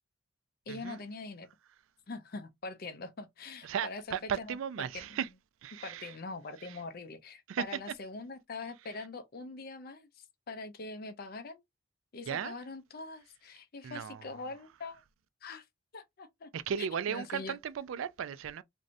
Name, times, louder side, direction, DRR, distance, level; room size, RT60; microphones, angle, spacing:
voice 1, 0.7-1.5 2.1-5.2 5.8-11.6 12.1-15.0 15.4-15.7 15.9-16.5 17.1-17.6, left 3 dB, 50° left, 0.5 m, -43 dB
voice 2, 3.6-5.3 5.6-6.1 6.6-6.8 7.5-7.6 12.3-12.6 13.8-14.3 16.5-18.6, right 8 dB, 80° right, 0.3 m, -36 dB
3.1 x 2.6 x 2.5 m
head